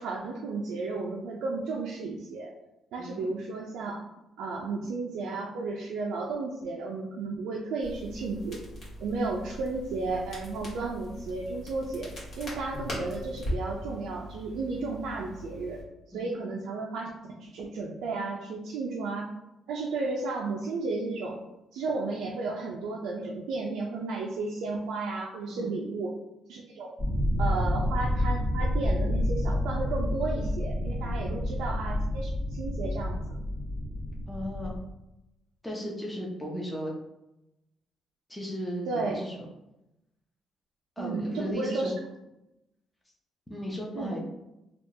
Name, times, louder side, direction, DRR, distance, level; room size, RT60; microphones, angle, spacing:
voice 1, 0.0-2.5 2.9-4.0 4.4-8.6 9.0-15.8 16.1-17.1 17.4-19.3 19.7-21.4 21.7-26.1 26.5-26.9 27.4-33.2 38.9-39.2 41.0-41.9 43.9-44.2, right 3 dB, 90° right, -3 dB, 0.4 m, -33 dB
Crackle, 7.8-15.8, equal, 55° left, 1.4 m, -40 dB
sound 1, 27.0-34.8, left 1 dB, 40° left, 1.1 m, -29 dB
voice 2, 31.0-31.4 34.3-34.8 35.6-36.9 38.3-39.3 41.0-41.9 43.5-44.2, equal, 10° left, -2 dB, 0.6 m, -36 dB
3.5 x 2.3 x 2.7 m, 0.91 s
cardioid pair, 90°, 0 cm